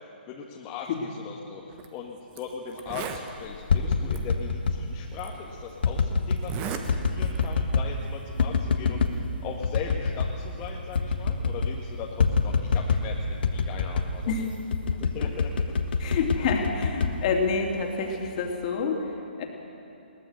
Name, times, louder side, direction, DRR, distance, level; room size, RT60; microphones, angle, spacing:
voice 1, 0.0-14.3 15.0-16.1, left 6 dB, 25° left, -2 dB, 1.6 m, -39 dB
Zipper (clothing), 1.7-1.9 2.4-2.5 2.7-3.3 4.1-4.2 5.2-5.3 6.4-6.9 7.2-7.5, right 8 dB, 25° right, 1.4 m, -35 dB
sound 1, 3.5-4.8 5.8-6.4 6.9-7.9 8.4-9.2 9.6-10.4 10.6-10.7 11.0-11.8 12.2-13.1 13.4-14.2 14.7-17.8 18.2-18.6, left 5 dB, 65° left, 1.6 m, -26 dB
voice 2, 16.0-19.1 19.4-19.5, left 5 dB, 40° left, 2 dB, 2.9 m, -28 dB
21.5 x 18.5 x 6.6 m, 2.7 s
hypercardioid pair, 140°, 6 cm